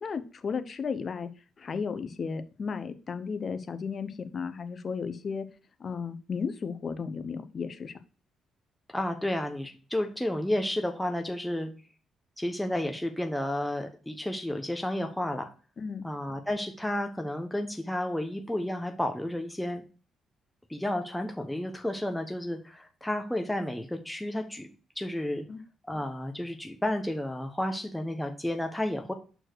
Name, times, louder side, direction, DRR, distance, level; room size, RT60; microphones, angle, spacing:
voice 1, 0.0-1.3 1.6-5.4 5.8-7.9 15.8-16.0 25.5-25.6, left 5 dB, 45° left, 10 dB, 0.9 m, -34 dB
voice 2, 8.9-11.7 12.4-15.5 16.0-19.8 20.7-24.7 25.0-25.4 25.9-29.1, left 1 dB, 5° left, 5 dB, 1.0 m, -31 dB
6.6 x 4.4 x 4.6 m, 0.36 s
cardioid pair, 90°, 0 cm